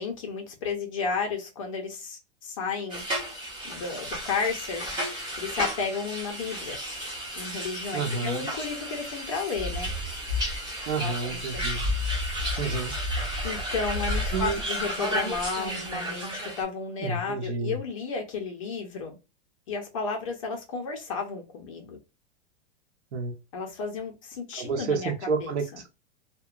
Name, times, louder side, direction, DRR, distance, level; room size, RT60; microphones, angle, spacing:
voice 1, 0.0-3.0 3.6-4.8 5.4-6.8 7.4-9.9 11.0-11.6 13.4-19.2 19.7-22.0 23.5-25.1 25.4-25.5, left 5 dB, 30° left, 0.4 m, -33 dB
sound 1, 2.9-16.6, right 1 dB, 15° right, 0.7 m, -34 dB
voice 2, 7.9-8.5 10.9-11.8 12.6-12.9 14.3-14.6 17.0-17.8 23.1-23.3 24.6-25.9, right 4 dB, 70° right, 0.9 m, -30 dB
sound 2, 9.5-14.6, left 2 dB, 45° right, 1.1 m, -32 dB
2.8 x 2.1 x 2.3 m
supercardioid pair, 170°, 36 cm